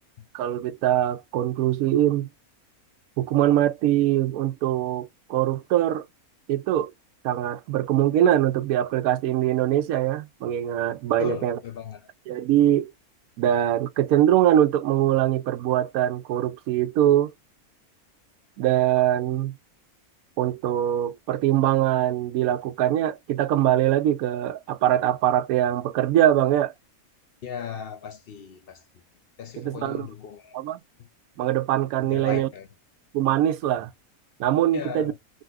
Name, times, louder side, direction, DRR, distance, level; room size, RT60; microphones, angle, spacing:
voice 1, 0.3-2.3 3.2-6.1 6.5-6.9 7.2-11.6 12.3-12.9 13.4-17.3 18.6-19.5 20.4-26.7 29.6-30.1 30.5-30.8 31.4-32.5 33.1-33.9 34.4-35.1, right 12 dB, 80° right, 1.0 m, -22 dB
voice 2, 11.2-12.1 27.4-28.8 29.4-30.6 31.0-31.1 32.0-32.7 34.7-35.2, left 8 dB, 65° left, 0.6 m, -37 dB
3.9 x 2.3 x 2.3 m
omnidirectional pair, 1.6 m